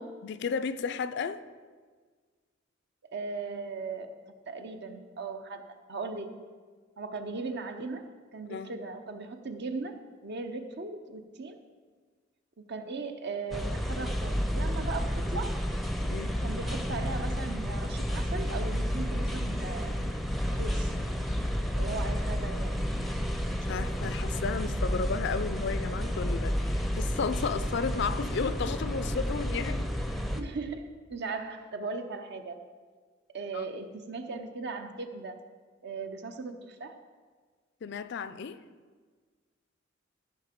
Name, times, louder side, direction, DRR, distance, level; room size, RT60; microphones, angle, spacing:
voice 1, 0.2-1.4 8.5-8.7 16.0-16.4 23.7-29.9 33.5-33.7 37.8-38.6, left 5 dB, 60° left, 13 dB, 0.4 m, -33 dB
voice 2, 3.1-4.2 4.5-5.6 5.9-6.4 7.0-8.0 8.3-11.6 12.6-15.5 16.4-19.9 20.5-20.9 21.7-22.8 30.4-32.6 33.3-35.4 35.8-36.9, right 3 dB, 60° right, 7 dB, 0.8 m, -38 dB
sound 1, 13.5-30.4, equal, ahead, 0.6 m, -31 dB
13.5 x 5.6 x 5.2 m, 1.5 s
head